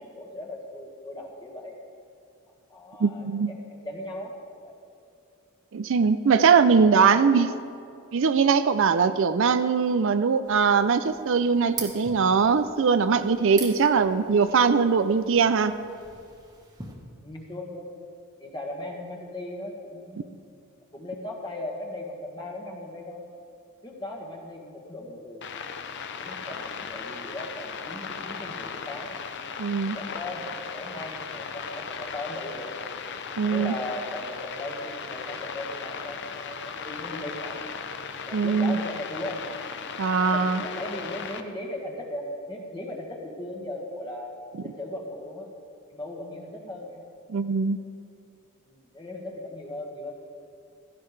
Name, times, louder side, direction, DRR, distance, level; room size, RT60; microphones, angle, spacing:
voice 1, 0.0-1.7 2.7-4.7 6.8-7.5 17.2-17.9 18.4-20.3 20.9-23.2 23.8-25.5 26.2-29.1 29.9-32.7 33.5-37.6 38.3-39.5 40.2-44.3 44.6-45.5 45.9-47.0 48.7-50.1, left 1 dB, 20° left, -1 dB, 1.6 m, -38 dB
voice 2, 3.0-3.5 5.7-7.5 8.1-15.8 29.6-30.0 33.4-33.7 38.3-38.8 40.0-40.6 47.3-47.8, right 5 dB, 60° right, 10 dB, 0.4 m, -21 dB
sound 1, 10.4-16.9, right 4 dB, 15° right, 1.4 m, -43 dB
sound 2, 25.4-41.4, left 6 dB, 50° left, 0.6 m, -37 dB
16.0 x 14.0 x 3.3 m, 2.5 s
head